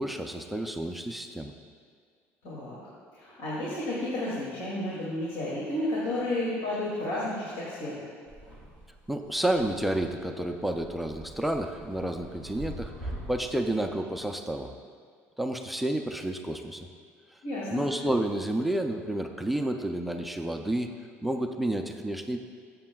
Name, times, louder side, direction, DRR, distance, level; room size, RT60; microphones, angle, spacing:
voice 1, 0.0-1.5 9.1-12.9 13.3-14.7 15.4-16.9 17.7-20.9 21.2-22.4, right 1 dB, ahead, 4 dB, 0.3 m, -30 dB
voice 2, 2.4-2.8 3.1-8.1 17.4-17.8, left 1 dB, 80° left, -8 dB, 2.4 m, -32 dB
sound 1, 8.3-14.4, right 1 dB, 25° left, 1.9 m, -44 dB
13.0 x 7.8 x 2.3 m, 2.1 s
cardioid pair, 175°, 5 cm